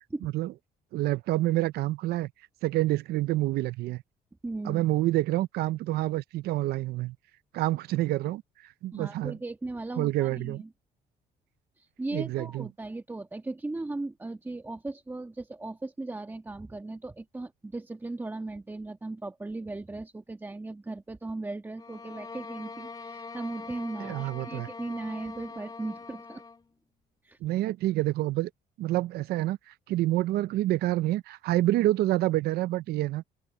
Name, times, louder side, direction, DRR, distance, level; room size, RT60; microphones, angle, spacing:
voice 1, 0.2-0.5 0.9-2.3 2.6-4.0 4.6-7.2 7.5-9.4 10.0-10.6 12.1-12.7 24.0-24.7 27.4-28.5 28.8-33.2, right 16 dB, 70° right, 0.5 m, -28 dB
voice 2, 4.4-4.8 8.9-10.7 11.8-26.4 27.2-27.4, right 2 dB, 10° right, 1.3 m, -37 dB
sound 1, 21.8-26.6, left 4 dB, 20° left, 0.6 m, -43 dB
open air
cardioid pair, 110°, 17 cm